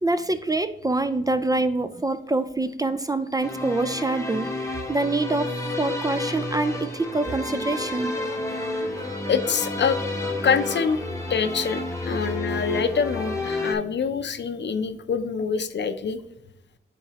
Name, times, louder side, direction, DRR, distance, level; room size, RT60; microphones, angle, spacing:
voice 1, 0.0-4.5 4.9-5.5 5.8-8.1, right 2 dB, 15° right, 11 dB, 0.3 m, -25 dB
sound 1, 3.4-13.8, left 2 dB, 15° left, 1.0 m, -30 dB
Singing / Plucked string instrument, 6.7-11.8, right 2 dB, 60° right, 1.9 m, -40 dB
voice 2, 9.3-10.0 10.4-11.0 11.3-16.2, left 6 dB, 60° left, 10 dB, 0.5 m, -25 dB
9.0 x 3.9 x 2.8 m, 0.90 s
wide cardioid pair, 90°, 21 cm